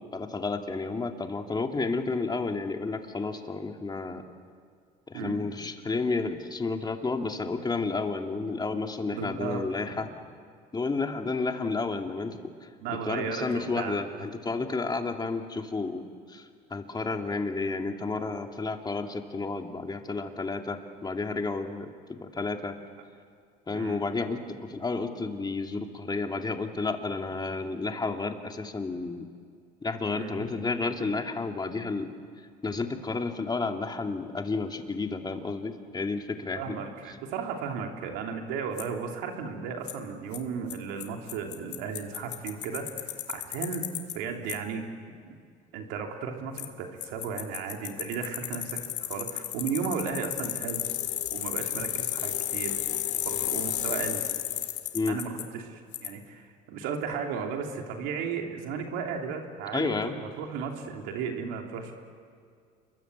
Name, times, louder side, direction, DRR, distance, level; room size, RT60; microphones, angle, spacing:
voice 1, 0.0-4.2 5.1-10.1 10.7-12.4 13.0-16.0 16.3-22.8 23.7-29.2 29.8-32.1 32.6-36.8 54.9-55.2 59.7-60.2, left 3 dB, 25° left, 4 dB, 2.6 m, -31 dB
voice 2, 9.1-9.7 12.8-14.0 23.7-24.0 30.1-30.5 36.5-43.9 44.1-44.8 45.3-45.4 45.7-50.9 51.3-52.8 53.2-54.2 55.1-61.9, right 6 dB, 90° right, 3 dB, 3.2 m, -35 dB
Bicycle, 38.8-38.9 39.9-40.0 40.3-40.4 40.7-40.8 41.0-41.1 41.3-44.1 44.5-44.6 46.6-46.7 47.0-55.4 55.9-56.1, left 12 dB, 70° left, 2.4 m, -32 dB
28.0 x 22.5 x 8.2 m, 2.2 s
supercardioid pair, 95°, 18 cm